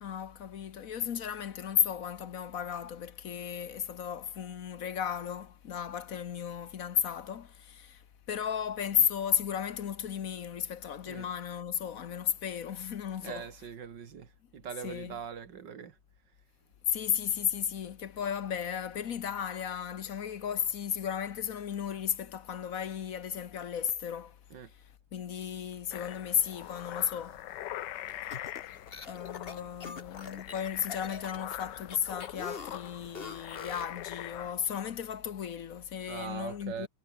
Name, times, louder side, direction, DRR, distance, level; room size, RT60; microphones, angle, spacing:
voice 1, 0.0-8.0 8.3-13.5 14.8-15.2 16.9-24.4 25.1-27.4 29.1-36.9, left 8 dB, 55° left, 1.3 m, -34 dB
voice 2, 13.2-16.0 24.5-24.7 26.6-26.9 36.1-36.9, right 7 dB, 90° right, 2.4 m, -42 dB
sound 1, 25.9-34.5, left 13 dB, 85° left, 1.4 m, -43 dB
sound 2, 28.1-34.0, left 5 dB, 35° left, 1.6 m, -44 dB
omnidirectional pair, 1.9 m